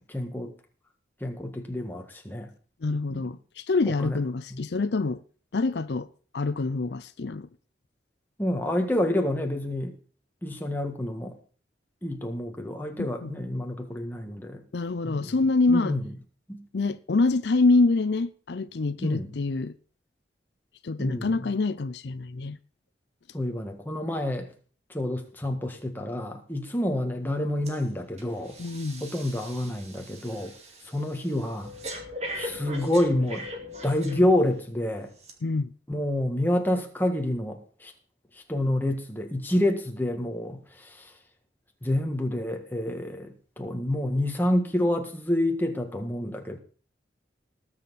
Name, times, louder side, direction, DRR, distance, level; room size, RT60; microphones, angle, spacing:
voice 1, 0.1-0.5 1.2-2.5 3.1-3.3 3.9-4.2 4.5-4.6 8.4-9.9 10.4-11.4 12.0-14.6 15.0-15.3 15.7-16.2 16.5-16.6 19.0-19.4 21.0-21.5 23.3-24.5 24.9-28.6 29.0-30.5 30.8-31.7 32.4-33.5 33.8-35.1 35.9-37.9 38.3-41.1 41.8-46.6, left 1 dB, 10° left, 1.6 m, -28 dB
voice 2, 2.8-5.2 5.5-6.1 6.3-7.5 13.0-13.3 14.7-16.0 16.7-19.7 20.8-22.6 28.6-29.0 35.4-35.7, left 3 dB, 70° left, 0.5 m, -26 dB
Breathing, 27.7-27.8 28.2-34.6 35.2-35.3, left 1 dB, 35° right, 2.3 m, -40 dB
19.5 x 7.3 x 4.1 m
head